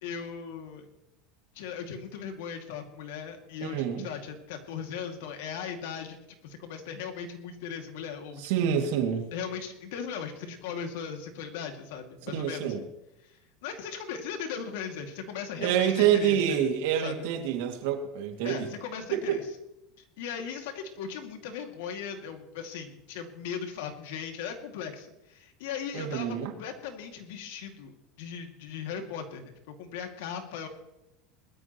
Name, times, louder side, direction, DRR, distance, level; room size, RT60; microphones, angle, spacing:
voice 1, 0.0-0.9 1.5-6.2 6.4-8.7 9.3-12.9 13.2-16.7 17.0-17.2 18.4-19.4 20.2-27.9 28.2-30.7, left 7 dB, 80° left, 4 dB, 2.3 m, -38 dB
voice 2, 3.6-4.1 8.4-9.3 12.3-12.8 15.6-18.7 19.1-19.4 25.9-26.5, right 9 dB, 75° right, 4 dB, 2.4 m, -27 dB
20.0 x 13.5 x 3.1 m, 0.91 s
supercardioid pair, 140°, 0 cm